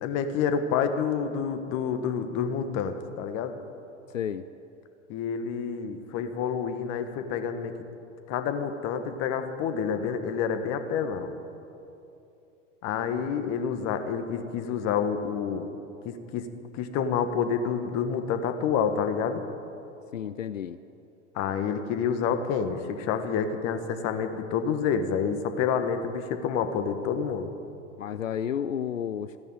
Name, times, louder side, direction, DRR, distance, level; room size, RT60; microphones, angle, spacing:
voice 1, 0.0-3.6 5.1-7.7 8.3-11.3 12.8-15.7 16.0-16.5 16.7-19.4 21.3-27.5, left 7 dB, 45° left, 8 dB, 1.5 m, -28 dB
voice 2, 4.1-4.4 20.1-20.8 28.0-29.4, left 9 dB, 85° left, 12 dB, 0.5 m, -31 dB
15.0 x 10.5 x 9.0 m, 2.8 s
figure-of-eight pair, 90°, 38 cm